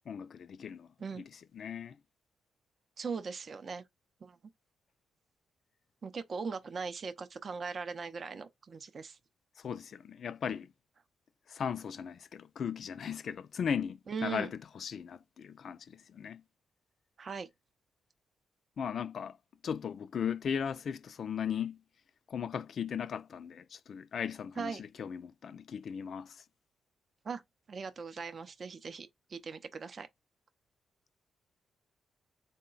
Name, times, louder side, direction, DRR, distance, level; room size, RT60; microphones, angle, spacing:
voice 1, 0.1-2.0 9.6-10.7 11.5-16.4 18.8-19.4 19.6-21.8 22.3-26.4, left 7 dB, 55° left, 0.3 m, -37 dB
voice 2, 3.0-3.8 4.2-4.4 6.0-9.2 14.1-14.5 17.2-17.5 24.6-24.8 27.2-27.4 27.7-30.1, right 5 dB, 45° right, 0.5 m, -39 dB
3.8 x 2.1 x 3.8 m
cardioid pair, 100°, 0 cm